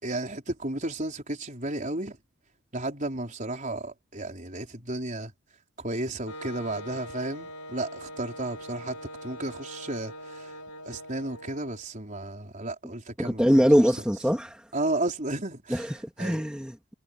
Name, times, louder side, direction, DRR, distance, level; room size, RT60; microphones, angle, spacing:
voice 1, 0.0-2.2 2.7-5.3 5.8-10.5 10.8-13.4 14.7-15.8 16.2-16.4, right 2 dB, 35° right, 5.0 m, -33 dB
Wind instrument woodwind instrument, 6.3-11.9, equal, 85° left, 5.5 m, -42 dB
voice 2, 13.2-14.7 15.7-16.9, equal, 5° right, 3.1 m, -23 dB
head